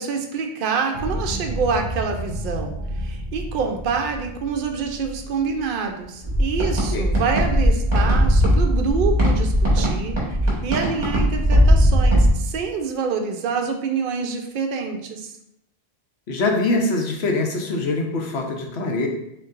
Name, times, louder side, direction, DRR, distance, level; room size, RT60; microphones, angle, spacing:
voice 1, 0.0-15.3, right 5 dB, 60° right, 4 dB, 0.6 m, -26 dB
sound 1, 0.9-6.6, equal, 60° left, 1.3 m, -32 dB
sound 2, 6.2-12.3, equal, 40° right, 1.5 m, -18 dB
voice 2, 16.3-19.1, left 2 dB, 80° left, 2 dB, 1.0 m, -23 dB
6.7 x 2.5 x 2.5 m, 0.79 s
omnidirectional pair, 1.1 m